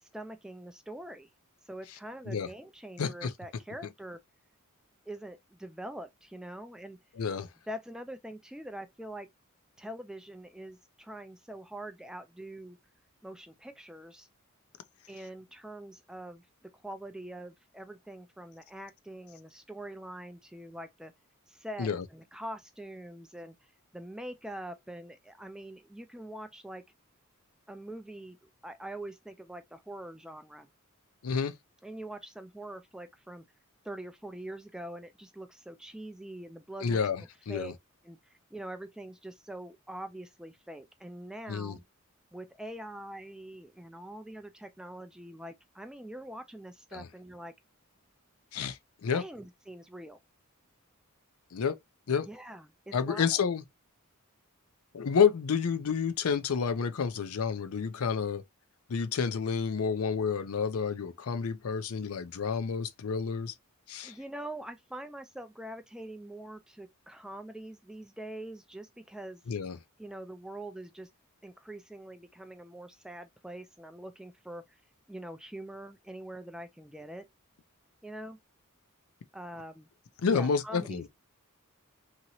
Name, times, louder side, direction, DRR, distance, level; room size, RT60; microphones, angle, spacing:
voice 1, 0.0-1.3 1.6-4.2 5.1-7.0 7.7-9.3 9.8-12.8 13.2-14.3 15.1-21.1 21.5-26.8 27.7-30.7 31.8-33.5 33.8-37.0 37.5-37.7 38.0-41.8 42.3-47.5 49.1-50.2 52.2-53.4 64.0-69.4 70.0-71.1 71.4-74.8 75.1-77.3 78.0-78.4 79.3-79.9 80.3-81.1, right 1 dB, 5° right, 0.3 m, -44 dB
voice 2, 3.0-3.3 7.2-7.5 21.8-22.0 31.2-31.5 36.8-37.7 41.5-41.8 46.9-47.0 48.5-49.2 51.5-51.8 52.1-52.3 52.9-53.6 54.9-58.4 58.9-63.5 63.9-64.1 69.5-69.8 80.2-81.1, left 6 dB, 80° left, 0.5 m, -29 dB
2.9 x 2.9 x 2.6 m
head